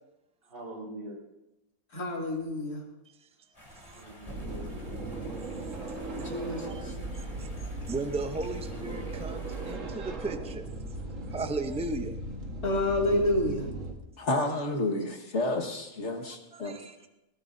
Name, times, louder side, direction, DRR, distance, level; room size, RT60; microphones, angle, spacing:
voice 1, 0.4-1.2 3.9-5.4, right 1 dB, 90° right, -1 dB, 4.3 m, -44 dB
voice 2, 1.9-2.8 6.1-6.9 12.6-13.7, left 1 dB, 75° left, -2 dB, 3.3 m, -29 dB
sound 1, 3.5-9.8, equal, 25° left, 3.8 m, -50 dB
sound 2, 4.3-13.9, right 2 dB, 55° right, 1.9 m, -38 dB
voice 3, 5.4-6.3 6.6-7.5 7.9-10.7 11.3-12.2 16.2-17.1, right 3 dB, 10° right, 7 dB, 0.3 m, -37 dB
voice 4, 14.2-16.8, left 2 dB, 50° left, 3 dB, 1.8 m, -30 dB
19.0 x 18.0 x 2.7 m, 0.94 s
omnidirectional pair, 1.6 m